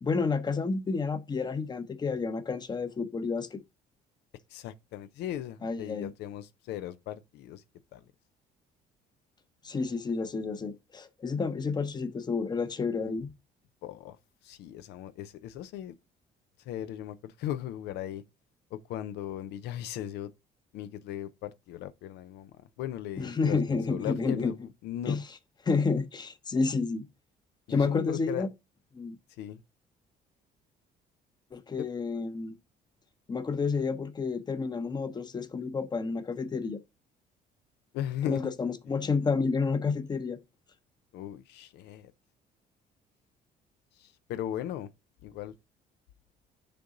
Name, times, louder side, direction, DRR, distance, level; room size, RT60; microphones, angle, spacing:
voice 1, 0.0-3.6 5.6-6.1 9.6-13.3 23.2-24.5 25.1-25.2 25.6-27.1 27.7-28.5 28.9-29.2 31.5-32.5 33.3-36.8 38.3-40.4, left 4 dB, 25° left, 0.8 m, -30 dB
voice 2, 4.5-7.6 7.9-8.0 13.8-14.2 14.4-15.9 16.6-18.2 18.7-20.3 20.7-22.5 22.8-25.2 27.7-28.5 29.4-29.6 31.8-31.9 37.9-38.5 38.9-39.0 41.1-42.1 44.0-44.9 45.2-45.5, left 11 dB, 80° left, 0.5 m, -37 dB
6.8 x 3.8 x 3.8 m
cardioid pair, 110°, 17 cm